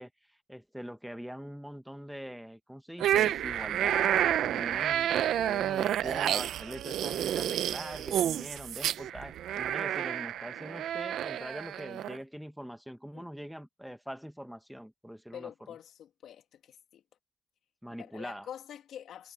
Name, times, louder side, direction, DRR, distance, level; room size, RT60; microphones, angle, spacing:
voice 1, 0.0-15.7 17.8-18.5, equal, ahead, 1.1 m, -43 dB
sound 1, 3.0-12.2, right 11 dB, 75° right, 0.8 m, -30 dB
voice 2, 15.3-17.0 18.0-19.3, left 9 dB, 70° left, 2.7 m, -46 dB
cardioid pair, 90°, 0 cm